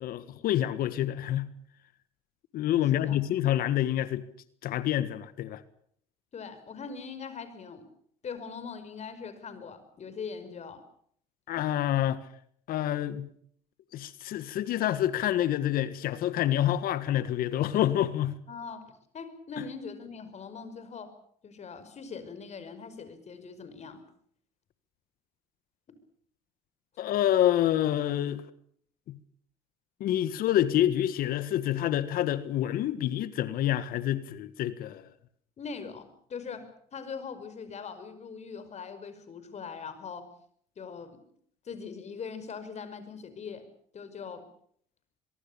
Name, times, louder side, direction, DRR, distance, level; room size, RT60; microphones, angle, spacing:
voice 1, 0.0-1.5 2.5-4.2 4.6-5.6 11.5-12.2 12.7-13.3 13.9-18.4 27.0-28.4 30.0-35.1, left 12 dB, 65° left, 1.6 m, -27 dB
voice 2, 6.3-7.8 8.2-10.8 18.5-21.1 21.4-24.0 35.6-40.3 40.8-41.1 41.7-43.6 43.9-44.4, left 5 dB, 45° left, 5.4 m, -41 dB
23.5 x 23.0 x 6.9 m
supercardioid pair, 75°, 17 cm